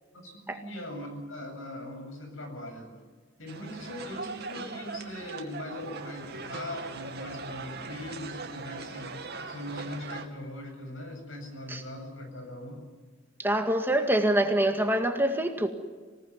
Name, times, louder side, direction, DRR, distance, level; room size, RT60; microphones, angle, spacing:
voice 1, 0.1-2.9 3.4-12.8, left 1 dB, 80° left, 5 dB, 7.8 m, -40 dB
sound 1, 3.5-10.3, right 4 dB, 55° right, 2.4 m, -40 dB
voice 2, 13.4-15.7, right 1 dB, 10° right, 5 dB, 2.0 m, -25 dB
26.5 x 19.0 x 9.6 m, 1.5 s
head